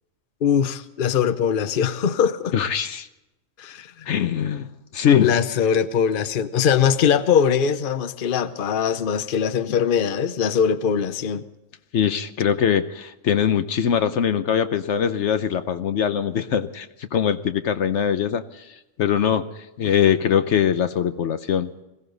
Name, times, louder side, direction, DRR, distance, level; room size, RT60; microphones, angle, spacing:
voice 1, 0.4-2.5 3.6-4.1 5.2-11.4, left 7 dB, 50° left, 12 dB, 0.9 m, -21 dB
voice 2, 2.5-3.1 4.1-4.7 4.9-5.3 9.7-9.8 11.9-19.4 19.8-21.7, left 8 dB, 70° left, 11 dB, 1.0 m, -22 dB
21.5 x 17.0 x 3.9 m, 0.94 s
omnidirectional pair, 1.3 m